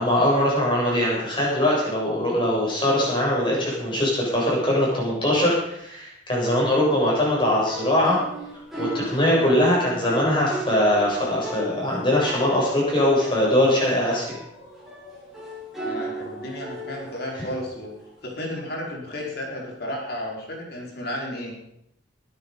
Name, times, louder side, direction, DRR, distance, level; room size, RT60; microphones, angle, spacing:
voice 1, 0.0-8.2 8.8-14.4, left 1 dB, 25° left, -4 dB, 7.6 m, -21 dB
sound 1, 7.5-18.2, right 1 dB, ahead, 6.4 m, -37 dB
voice 2, 9.3-9.7 15.8-17.9 18.2-21.5, left 1 dB, 55° left, -1 dB, 4.5 m, -33 dB
22.0 x 10.5 x 5.5 m, 0.78 s
head